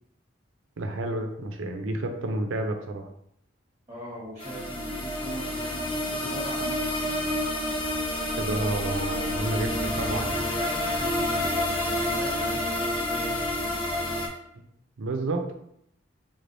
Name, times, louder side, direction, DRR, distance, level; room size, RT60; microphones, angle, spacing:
voice 1, 0.8-3.1 8.4-10.4 15.0-15.5, right 2 dB, 80° right, 5 dB, 0.5 m, -30 dB
voice 2, 3.9-7.5 10.1-13.4, equal, 15° right, -6 dB, 1.2 m, -41 dB
sound 1, 4.4-14.3, left 1 dB, 25° left, 0.7 m, -29 dB
3.6 x 3.3 x 2.6 m, 0.74 s
head